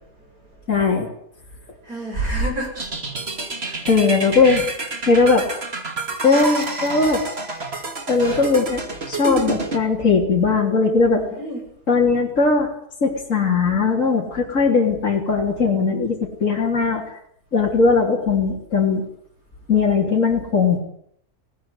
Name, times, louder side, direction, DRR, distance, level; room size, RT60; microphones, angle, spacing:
voice 1, 0.7-1.1 3.8-4.7 5.1-5.5 6.2-7.2 8.1-8.8 9.1-11.2 11.9-12.7 13.0-17.0 17.5-19.0 19.7-20.8, left 4 dB, 55° left, -1 dB, 3.9 m, -19 dB
voice 2, 1.9-2.8 3.6-3.8 11.2-11.6, right 2 dB, 70° right, 0 dB, 7.8 m, -27 dB
sound 1, 2.8-9.8, right 3 dB, 40° right, 2.8 m, -29 dB
20.0 x 18.5 x 9.8 m, 0.70 s
omnidirectional pair, 1.6 m